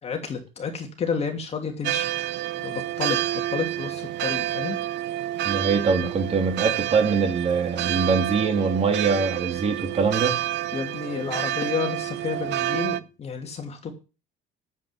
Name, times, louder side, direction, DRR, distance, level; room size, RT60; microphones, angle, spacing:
voice 1, 0.0-2.1 2.6-3.2 3.5-4.8 6.0-6.1 10.7-13.9, left 5 dB, 35° left, 3 dB, 2.8 m, -30 dB
sound 1, 1.8-13.0, right 14 dB, 70° right, 0.8 m, -29 dB
voice 2, 5.4-10.4, right 5 dB, 35° right, 5 dB, 3.0 m, -23 dB
9.7 x 8.3 x 7.3 m, 0.32 s
cardioid pair, 135°, 19 cm